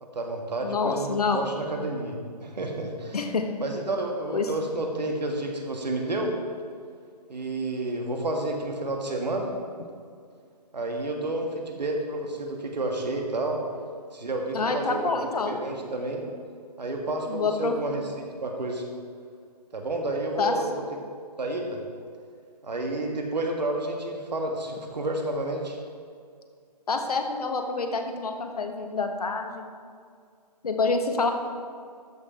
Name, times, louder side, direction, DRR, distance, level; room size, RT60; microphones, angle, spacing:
voice 1, 0.0-3.2 3.6-6.3 7.3-9.5 10.7-13.6 14.1-16.3 16.8-18.8 19.7-20.8 21.4-21.8 22.6-25.8, right 2 dB, 80° right, 2 dB, 1.8 m, -30 dB
voice 2, 0.6-1.4 3.1-3.5 4.3-4.5 14.5-15.6 17.3-17.8 20.4-20.5 26.9-29.6 30.6-31.3, left 4 dB, 65° left, 5 dB, 1.3 m, -27 dB
13.0 x 5.8 x 4.3 m, 2.2 s
hypercardioid pair, 170°, 21 cm